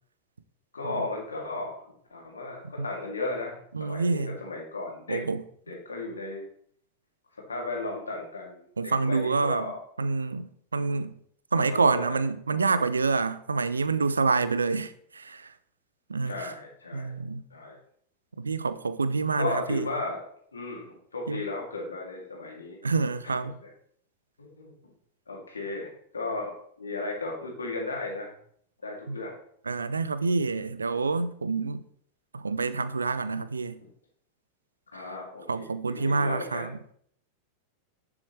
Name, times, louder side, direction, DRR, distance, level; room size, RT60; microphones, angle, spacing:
voice 1, 0.7-3.5 3.8-5.2 5.7-6.4 7.5-9.8 11.5-12.2 12.5-12.8 16.3-17.1 17.5-17.7 19.4-20.2 20.5-22.8 23.6-23.7 24.4-24.7 25.3-28.3 28.8-29.3 34.9-36.7, left 2 dB, 75° left, 2.6 m, -35 dB
voice 2, 3.7-4.4 5.1-5.4 8.8-9.7 10.0-11.1 11.5-15.5 16.1-16.5 16.9-17.4 18.4-19.9 21.3-21.4 22.8-23.6 29.1-29.2 29.7-31.8 32.3-33.7 35.5-36.9, right 4 dB, 75° right, 0.6 m, -27 dB
10.5 x 7.2 x 3.3 m
figure-of-eight pair, 90°, 0 cm